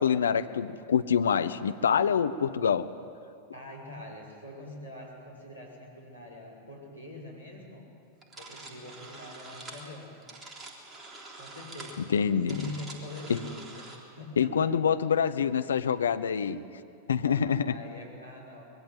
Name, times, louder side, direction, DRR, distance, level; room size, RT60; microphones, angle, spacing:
voice 1, 0.0-2.9 12.1-12.6 13.3-13.4 14.4-16.6 17.1-17.7, left 7 dB, 70° left, 11 dB, 0.9 m, -26 dB
voice 2, 3.5-7.9 8.4-10.3 11.4-12.1 12.5-14.7 15.3-15.4 17.1-18.6, left 2 dB, 90° left, -4 dB, 5.7 m, -44 dB
sound 1, 8.2-14.0, right 2 dB, 20° right, 3.6 m, -46 dB
25.5 x 21.5 x 7.8 m, 2.3 s
figure-of-eight pair, 90°, 0 cm